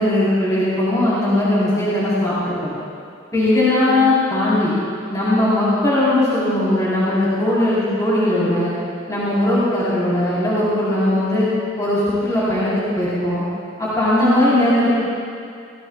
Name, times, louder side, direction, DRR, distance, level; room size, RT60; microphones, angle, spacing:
voice 1, 0.0-2.7 3.3-4.8 5.1-8.7 9.1-11.5 11.8-13.4 13.8-15.0, left 1 dB, 15° left, -10 dB, 4.1 m, -18 dB
27.0 x 18.5 x 2.5 m, 2.4 s
head